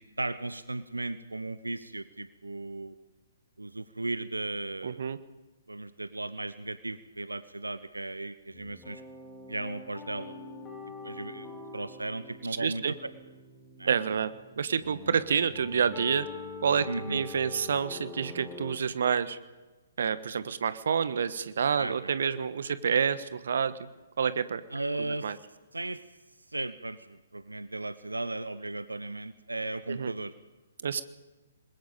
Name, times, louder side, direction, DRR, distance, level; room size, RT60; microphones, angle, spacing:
voice 1, 0.0-2.9 3.6-5.0 5.7-9.0 9.5-10.3 11.0-13.1 13.8-13.9 16.9-17.2 21.8-22.1 24.7-25.3 25.7-26.0 26.5-30.3, right 2 dB, 80° right, 14 dB, 0.9 m, -36 dB
voice 2, 4.8-5.2 12.6-12.9 13.8-16.3 16.6-19.4 20.0-23.7 24.2-24.6 25.2-25.4 29.9-30.1 30.8-31.0, right 7 dB, 55° right, 13 dB, 1.3 m, -28 dB
sound 1, 8.5-18.7, left 3 dB, 15° left, 6.9 m, -45 dB
27.5 x 21.5 x 5.3 m, 1.2 s
figure-of-eight pair, 125°, 0 cm